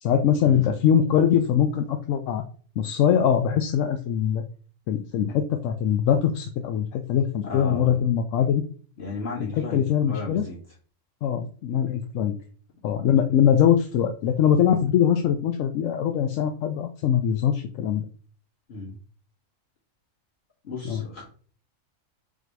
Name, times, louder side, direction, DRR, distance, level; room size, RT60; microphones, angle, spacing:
voice 1, 0.0-2.4 2.8-4.4 4.9-8.6 9.5-10.5 11.2-12.4 12.8-18.1 20.8-21.0, left 9 dB, 80° left, 6 dB, 0.9 m, -22 dB
voice 2, 7.4-8.1 9.0-10.6 18.7-19.0 20.6-21.3, left 3 dB, 50° left, -6 dB, 2.3 m, -34 dB
4.0 x 2.7 x 4.6 m, 0.42 s
omnidirectional pair, 1.3 m